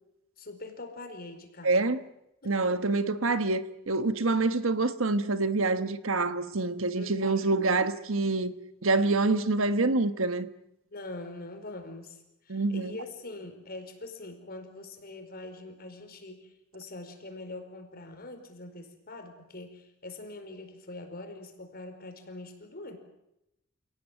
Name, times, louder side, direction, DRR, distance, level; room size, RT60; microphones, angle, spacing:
voice 1, 0.4-1.7 2.4-2.6 2.8-2.9 7.0-7.6 10.8-23.0, left 2 dB, 45° left, 4.8 m, -43 dB
voice 2, 1.6-2.0 2.4-8.5 8.8-10.5 12.5-13.0, right 3 dB, 70° right, 1.4 m, -26 dB
28.5 x 18.5 x 9.1 m
head